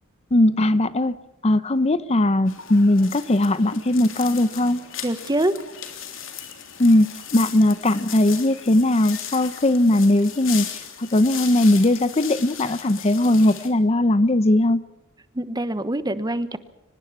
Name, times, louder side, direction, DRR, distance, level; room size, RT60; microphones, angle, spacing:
voice 1, 0.3-1.2 1.4-4.8 6.8-7.1 7.3-14.8, left 1 dB, 30° left, 15 dB, 0.7 m, -19 dB
sound 1, 2.5-13.7, left 8 dB, 75° left, 3.3 m, -37 dB
voice 2, 5.0-5.6 15.3-16.6, right 1 dB, 20° right, 13 dB, 1.0 m, -24 dB
24.0 x 20.0 x 5.7 m, 0.93 s
head